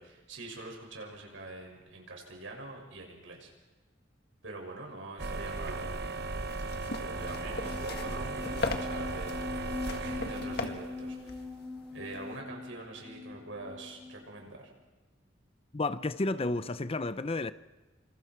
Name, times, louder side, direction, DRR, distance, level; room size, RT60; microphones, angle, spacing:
voice 1, 0.0-3.5 4.4-6.1 7.0-9.4 9.8-11.4 11.9-14.7, right 2 dB, 80° right, 6.7 m, -44 dB
sound 1, 5.2-11.1, right 3 dB, 60° right, 0.9 m, -37 dB
sound 2, 6.3-12.4, left 3 dB, 55° left, 1.8 m, -39 dB
sound 3, 6.8-14.4, left 3 dB, 5° right, 6.9 m, -42 dB
voice 2, 15.7-17.5, left 2 dB, 30° left, 0.7 m, -31 dB
27.5 x 27.0 x 4.6 m
head